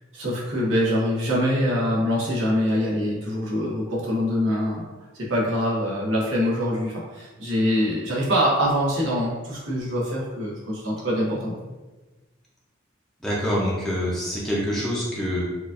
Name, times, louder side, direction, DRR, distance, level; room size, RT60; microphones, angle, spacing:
voice 1, 0.1-4.8 5.3-11.7, equal, 75° right, -5 dB, 1.0 m, -24 dB
voice 2, 13.2-15.4, equal, ahead, -7 dB, 0.6 m, -25 dB
4.7 x 2.5 x 2.5 m, 1.2 s
head